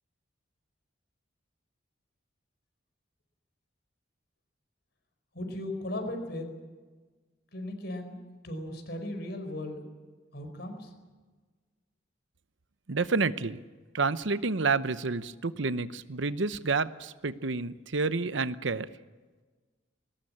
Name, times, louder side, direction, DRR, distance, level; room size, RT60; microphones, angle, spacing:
voice 1, 5.3-6.5 7.5-8.2 8.4-9.9 10.3-10.9, left 1 dB, 55° left, 5 dB, 5.0 m, -37 dB
voice 2, 12.9-13.6 13.9-18.9, right 4 dB, 70° right, 14 dB, 0.8 m, -29 dB
22.0 x 20.0 x 8.8 m, 1.3 s
head